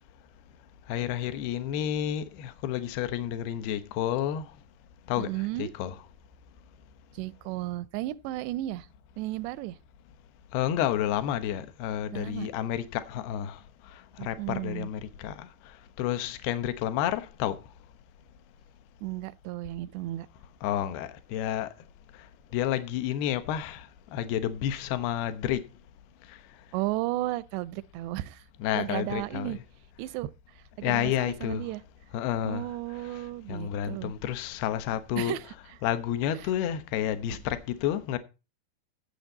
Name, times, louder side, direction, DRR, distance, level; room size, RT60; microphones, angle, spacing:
voice 1, 0.9-4.5 5.1-5.3 5.6-6.0 10.5-17.6 20.6-21.7 22.5-25.6 26.3-26.4 28.6-29.6 30.8-31.7 32.1-32.7 33.1-35.4 35.8-38.2, left 11 dB, 75° left, 3.0 m, -30 dB
voice 2, 5.2-5.7 7.1-8.9 9.2-9.8 12.1-12.5 14.2-14.9 19.0-20.3 26.7-28.4 28.7-29.6 30.0-31.8 32.4-34.1 35.2-35.5 37.3-37.4, right 17 dB, 85° right, 2.8 m, -34 dB
15.5 x 7.9 x 4.0 m
omnidirectional pair, 4.9 m